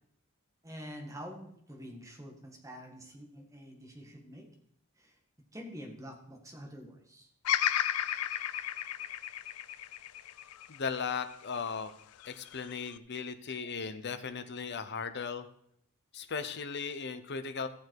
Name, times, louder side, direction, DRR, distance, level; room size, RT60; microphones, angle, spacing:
voice 1, 0.6-4.5 5.0-5.1 5.5-7.3, equal, 15° right, 1 dB, 1.7 m, -47 dB
Bird vocalization bird call bird song, 7.4-11.7 12.2-13.0, left 11 dB, 80° left, 0.4 m, -33 dB
voice 2, 10.7-11.9 12.2-15.5 16.1-17.7, left 5 dB, 50° left, 10 dB, 0.8 m, -37 dB
14.0 x 7.2 x 4.7 m, 0.70 s
head